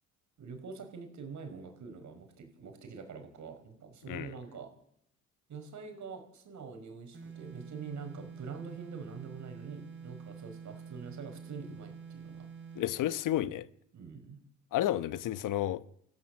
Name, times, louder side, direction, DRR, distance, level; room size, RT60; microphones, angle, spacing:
voice 1, 0.4-4.7 5.5-12.5 13.9-14.4, right 5 dB, 55° right, 5.0 m, -45 dB
sound 1, 7.1-13.0, right 6 dB, 30° right, 5.8 m, -47 dB
voice 2, 12.7-13.7 14.7-15.8, left 13 dB, 60° left, 1.1 m, -31 dB
28.0 x 15.0 x 7.3 m
hypercardioid pair, 60°, 35 cm